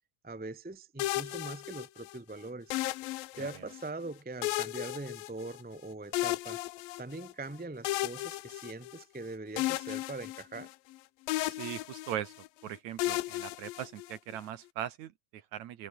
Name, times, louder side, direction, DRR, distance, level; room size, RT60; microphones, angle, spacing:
voice 1, 0.2-2.7 3.4-6.6 7.0-10.7, right 2 dB, 10° right, 0.6 m, -42 dB
sound 1, 1.0-2.2 2.7-3.8 4.4-5.8 6.1-7.3 7.8-9.2 9.6-11.0 11.3-12.5 13.0-14.4, left 17 dB, 85° left, 2.6 m, -35 dB
voice 2, 11.5-12.3 12.6-15.9, right 11 dB, 65° right, 2.1 m, -40 dB
omnidirectional pair, 4.1 m